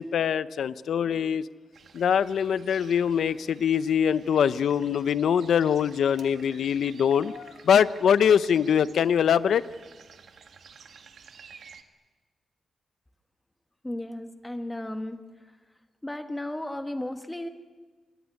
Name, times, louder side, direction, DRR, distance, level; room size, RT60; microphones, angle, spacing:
voice 1, 0.0-1.5 1.9-9.6, left 8 dB, 80° left, 15 dB, 0.7 m, -23 dB
sound 1, 1.7-11.8, right 6 dB, 60° right, 1.7 m, -52 dB
voice 2, 13.8-15.2 16.0-17.5, left 1 dB, 10° left, 7 dB, 1.6 m, -34 dB
26.5 x 20.5 x 9.7 m, 1.4 s
wide cardioid pair, 155°, 0 cm